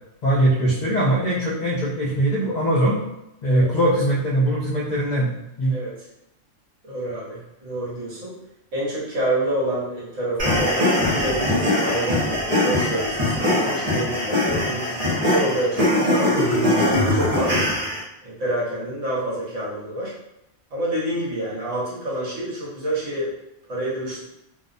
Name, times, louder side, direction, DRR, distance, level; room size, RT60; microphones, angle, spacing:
voice 1, 0.2-3.0 3.4-5.3 5.6-5.7, right 1 dB, 85° left, -5 dB, 0.4 m, -21 dB
voice 2, 6.8-8.4 8.7-12.3 12.6-16.5 17.0-17.7 18.2-20.1 20.7-23.3 23.7-24.2, right 1 dB, 75° right, -6 dB, 1.3 m, -27 dB
sound 1, 10.4-18.0, left 1 dB, 35° right, 0.7 m, -21 dB
2.7 x 2.0 x 2.4 m, 0.86 s
omnidirectional pair, 1.3 m